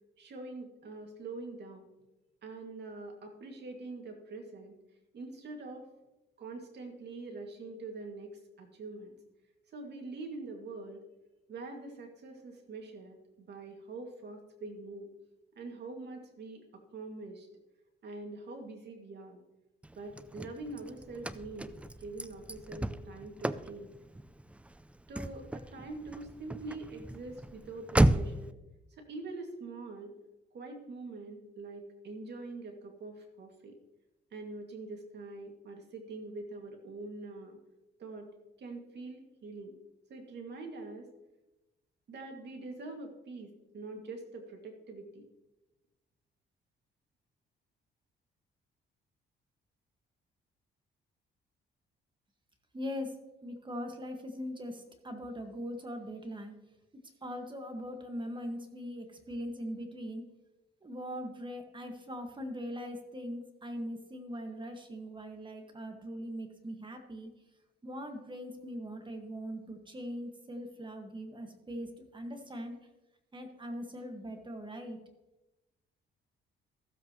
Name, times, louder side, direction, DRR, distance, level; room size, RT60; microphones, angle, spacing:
voice 1, 0.2-1.9 2.4-4.7 5.1-5.9 6.4-9.2 9.7-11.0 11.5-15.1 15.6-17.5 18.0-19.4 20.0-21.7 22.0-23.9 25.1-28.5 28.9-30.1 30.5-33.7 34.3-37.6 38.0-38.3 38.6-39.7 40.1-41.1 42.1-45.2, right 3 dB, 60° right, 3 dB, 2.2 m, -44 dB
Car / Slam, 19.8-28.5, right 1 dB, 5° right, 0.4 m, -34 dB
voice 2, 52.7-56.5 57.2-60.2 60.8-67.3 67.8-72.7 73.3-75.0, equal, 25° right, 5 dB, 1.7 m, -41 dB
15.0 x 7.8 x 3.0 m, 1.0 s
cardioid pair, 90°, 20 cm